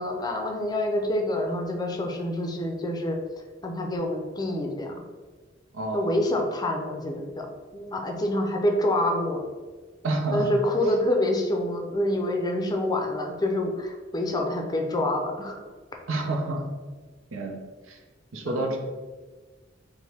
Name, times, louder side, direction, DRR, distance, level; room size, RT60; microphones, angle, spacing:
voice 1, 0.0-3.2 3.6-4.9 5.9-7.5 7.7-9.4 10.3-15.6 18.4-18.8, left 1 dB, 20° left, 2 dB, 0.5 m, -27 dB
voice 2, 5.7-6.2 10.0-10.5 16.1-16.6 17.3-17.6 17.9-18.0 18.3-18.8, right 2 dB, 85° right, 2 dB, 0.7 m, -28 dB
5.2 x 2.1 x 3.3 m, 1.4 s
head